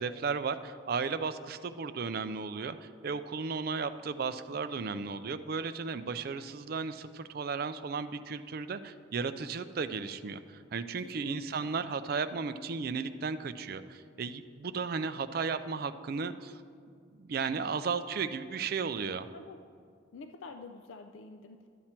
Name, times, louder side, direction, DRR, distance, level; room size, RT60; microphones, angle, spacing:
voice 1, 0.0-16.6 17.2-19.3, right 5 dB, 50° right, 11 dB, 0.4 m, -35 dB
voice 2, 11.0-11.7 19.3-19.6 20.1-21.7, left 3 dB, 75° left, 7 dB, 0.4 m, -48 dB
12.0 x 7.4 x 4.4 m, 2.2 s
head